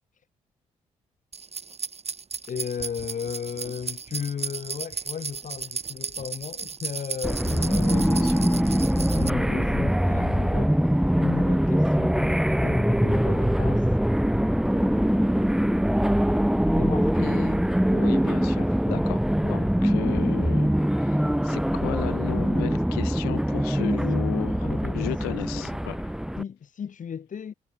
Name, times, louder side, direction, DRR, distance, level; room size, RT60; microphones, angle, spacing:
sound 1, 1.3-9.3, right 5 dB, 45° right, 5.2 m, -35 dB
voice 1, 2.5-10.8 11.2-13.9 14.7-15.9 16.6-17.2 23.8-24.2 24.6-25.7 26.4-27.5, left 7 dB, 55° left, 3.6 m, -35 dB
sound 2, 7.2-26.4, equal, 5° right, 3.2 m, -23 dB
voice 2, 7.5-8.3 17.2-17.6 17.9-24.7 24.9-26.0, left 27 dB, 90° left, 5.5 m, -35 dB
hypercardioid pair, 50°, 16 cm